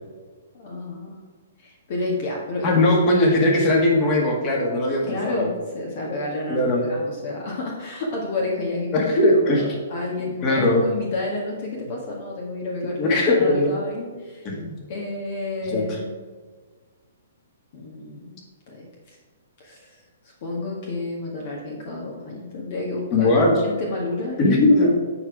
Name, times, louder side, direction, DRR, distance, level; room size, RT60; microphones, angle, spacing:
voice 1, 0.5-1.2 1.6-2.8 5.1-14.5 14.9-16.1 17.7-19.2 19.6-23.3 23.6-24.6, left 2 dB, 45° left, -2 dB, 1.6 m, -30 dB
voice 2, 2.6-5.5 6.5-6.8 8.9-9.7 10.2-10.8 13.0-13.7 14.5-14.7 15.7-16.0 23.1-23.5 24.4-24.9, left 2 dB, 30° left, -1 dB, 1.9 m, -19 dB
8.6 x 4.7 x 4.8 m, 1.4 s
figure-of-eight pair, 120°, 0 cm